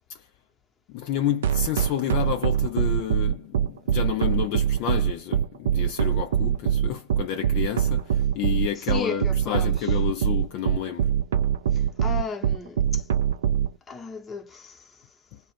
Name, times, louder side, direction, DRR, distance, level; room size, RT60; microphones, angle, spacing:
voice 1, 0.9-11.1, left 10 dB, 45° left, 0.5 m, -30 dB
sound 1, 1.4-13.7, right 9 dB, 60° right, 0.5 m, -23 dB
voice 2, 8.7-9.9 12.0-13.0 13.9-14.8, left 5 dB, 15° left, 0.9 m, -35 dB
2.4 x 2.2 x 3.2 m
figure-of-eight pair, 90°, 0 cm